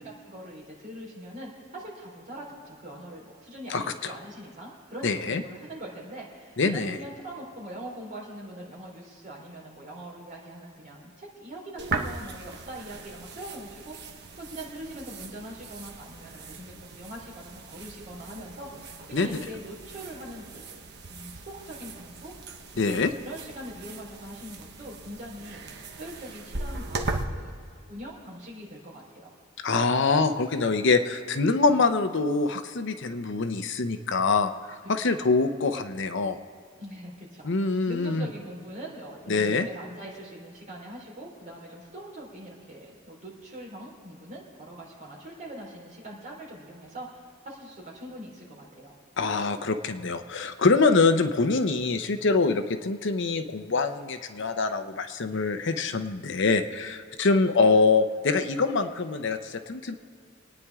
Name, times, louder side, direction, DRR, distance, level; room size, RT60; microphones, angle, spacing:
voice 1, 0.0-20.8 21.1-22.3 22.7-25.7 26.0-27.5 27.9-29.3 35.1-35.4 36.8-47.2 47.4-48.9, right 1 dB, 40° right, -3 dB, 3.9 m, -42 dB
voice 2, 3.7-4.1 5.0-5.4 6.6-7.0 19.1-19.3 22.8-23.1 29.6-36.4 37.4-38.3 39.3-39.7 49.2-59.9, left 4 dB, 65° left, 9 dB, 0.7 m, -24 dB
sound 1, 11.8-27.2, right 3 dB, 55° right, 1.1 m, -39 dB
26.5 x 9.7 x 3.6 m, 2.2 s
head